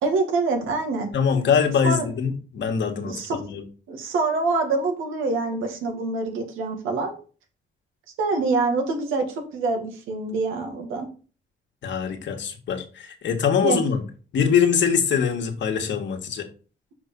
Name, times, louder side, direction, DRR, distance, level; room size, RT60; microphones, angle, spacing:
voice 1, 0.0-1.1 1.8-2.1 3.0-3.4 3.9-7.2 8.2-9.3 9.5-11.1 13.6-13.8, right 3 dB, 90° right, 4 dB, 2.2 m, -25 dB
voice 2, 1.1-3.6 11.8-14.0 14.3-16.5, left 7 dB, 65° left, 4 dB, 1.9 m, -23 dB
6.0 x 5.5 x 5.4 m, 0.37 s
cardioid pair, 90°, 20 cm